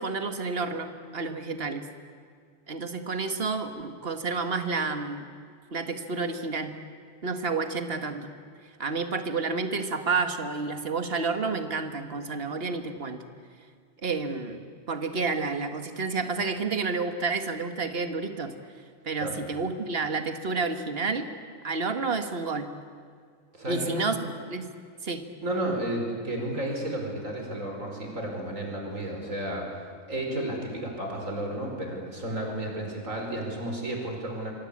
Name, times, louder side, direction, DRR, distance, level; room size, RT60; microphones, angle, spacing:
voice 1, 0.0-1.9 2.7-5.3 5.7-6.8 7.2-8.3 8.8-13.2 14.0-14.6 14.9-18.5 19.0-21.3 21.6-22.7 23.7-24.2 24.5-24.7 25.0-25.3, right 4 dB, 45° right, 7 dB, 1.9 m, -30 dB
voice 2, 23.5-24.2 25.4-29.7 30.1-34.5, right 1 dB, 70° right, 1 dB, 5.6 m, -32 dB
26.0 x 23.5 x 8.8 m, 2.1 s
omnidirectional pair, 1.4 m